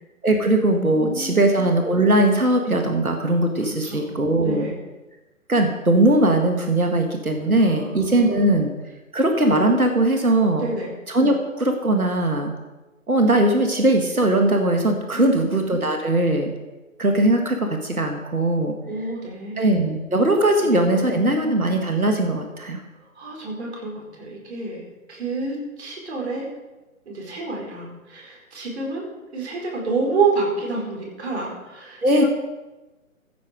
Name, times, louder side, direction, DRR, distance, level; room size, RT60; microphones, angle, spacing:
voice 1, 0.2-4.7 5.5-8.7 9.1-10.7 11.1-12.5 13.1-16.5 17.0-18.7 19.6-22.8 32.0-32.2, right 1 dB, 90° right, 4 dB, 2.0 m, -20 dB
voice 2, 0.9-1.4 3.8-4.1 4.4-4.8 7.6-8.6 10.5-10.9 15.1-15.5 18.8-19.7 20.6-21.3 23.1-24.8 25.1-26.5 27.1-29.0 29.3-32.3, right 4 dB, 50° right, -2 dB, 4.6 m, -29 dB
15.0 x 7.9 x 5.1 m, 1.1 s
figure-of-eight pair, 140°, 42 cm